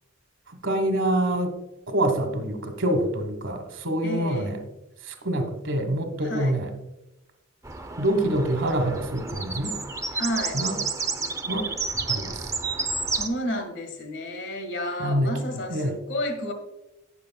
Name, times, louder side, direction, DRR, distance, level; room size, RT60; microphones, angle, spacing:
voice 1, 0.6-1.5 1.9-4.6 5.0-6.7 8.0-9.8 10.5-10.8 11.5-11.7 12.1-12.4 15.0-15.3 15.7-15.9, right 1 dB, 70° right, 6 dB, 1.4 m, -26 dB
voice 2, 4.0-4.5 6.2-6.6 10.1-10.6 13.1-16.5, left 1 dB, 55° left, 6 dB, 1.7 m, -31 dB
sound 1, 7.6-13.3, right 4 dB, 15° right, 0.6 m, -31 dB
17.5 x 6.7 x 2.3 m, 0.92 s
head